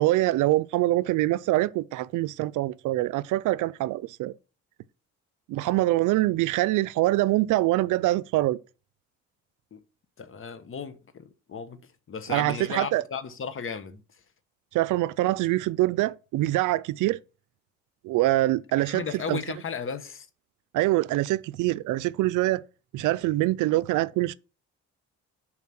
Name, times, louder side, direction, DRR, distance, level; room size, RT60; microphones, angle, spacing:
voice 1, 0.0-4.3 5.5-8.6 12.3-13.0 14.7-17.2 18.0-19.0 19.3-19.4 20.7-22.6 22.9-24.4, right 17 dB, 85° right, 0.5 m, -24 dB
voice 2, 10.2-14.0 18.8-20.3, left 6 dB, 45° left, 1.1 m, -35 dB
7.4 x 4.6 x 5.9 m
cardioid pair, 90°, 30 cm